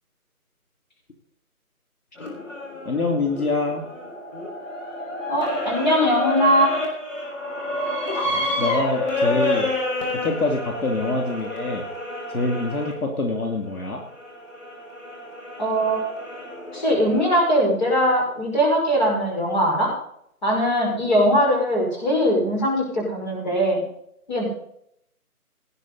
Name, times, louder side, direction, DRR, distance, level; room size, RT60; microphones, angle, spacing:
sound 1, 2.2-12.9 13.7-17.4, left 1 dB, 55° left, 6.0 m, -29 dB
voice 1, 2.8-3.8 8.2-9.7 10.1-11.8 12.3-14.0, left 2 dB, 70° left, 2 dB, 2.9 m, -25 dB
voice 2, 5.3-6.7 15.6-16.1 16.7-19.9 20.4-23.8 24.3-24.5, equal, 30° left, -4 dB, 5.9 m, -21 dB
18.0 x 9.9 x 4.1 m, 0.71 s
figure-of-eight pair, 175°, 44 cm